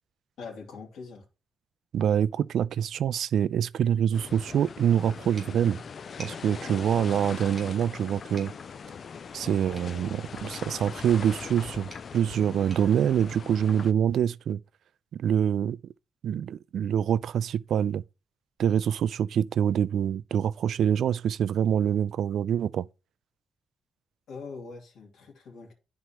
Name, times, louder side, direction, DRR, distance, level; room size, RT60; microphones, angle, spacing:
voice 1, 0.4-1.3 24.3-25.7, left 4 dB, 70° left, 2.6 m, -42 dB
voice 2, 1.9-5.8 6.2-8.5 9.3-14.6 15.1-15.8 16.2-18.0 18.6-22.9, right 9 dB, 65° right, 0.4 m, -25 dB
sound 1, 4.1-13.9, left 6 dB, 40° left, 0.3 m, -41 dB
sound 2, 5.4-14.0, right 1 dB, 15° right, 3.5 m, -54 dB
11.5 x 4.6 x 2.9 m
wide cardioid pair, 165°, 0 cm